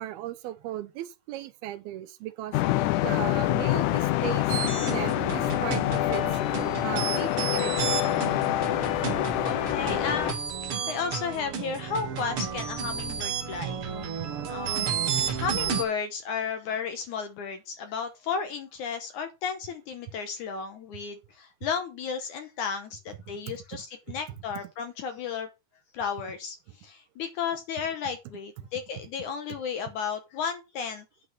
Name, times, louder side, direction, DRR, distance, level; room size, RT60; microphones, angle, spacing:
voice 1, 0.0-2.6 3.0-4.5 4.8-6.3 6.8-8.3 23.5-24.2 28.6-28.7, right 13 dB, 80° right, 2.7 m, -37 dB
sound 1, 2.5-10.3, left 15 dB, 85° left, 1.7 m, -26 dB
sound 2, 4.5-15.8, right 7 dB, 60° right, 1.5 m, -32 dB
voice 2, 9.4-13.8 14.5-25.5 25.9-31.1, left 6 dB, 70° left, 2.0 m, -34 dB
8.9 x 5.4 x 5.9 m
omnidirectional pair, 4.3 m